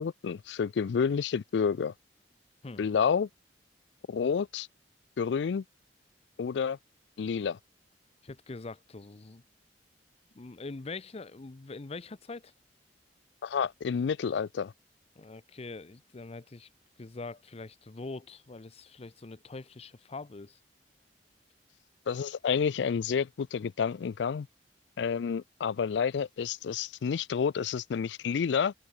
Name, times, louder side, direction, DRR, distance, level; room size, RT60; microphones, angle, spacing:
voice 1, 0.0-1.9 2.8-3.3 4.1-4.7 5.2-5.6 6.4-6.8 7.2-7.6 13.4-14.7 22.1-24.5 25.0-28.7, left 6 dB, 75° left, 0.4 m, -29 dB
voice 2, 8.2-9.4 10.3-12.5 15.2-16.7 17.0-20.6, left 3 dB, 35° left, 0.6 m, -43 dB
open air
head